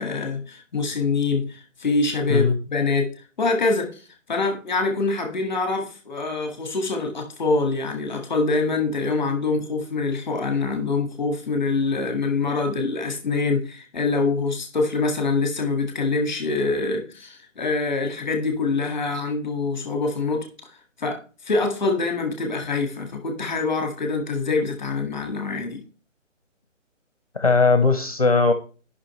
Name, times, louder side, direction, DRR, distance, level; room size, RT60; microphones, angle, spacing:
voice 1, 0.0-3.1 3.4-20.5 21.0-25.8, left 3 dB, 5° left, 4 dB, 1.4 m, -25 dB
voice 2, 27.3-28.5, left 3 dB, 30° left, 8 dB, 0.8 m, -18 dB
14.5 x 5.7 x 3.1 m, 0.36 s
hypercardioid pair, 175°, 38 cm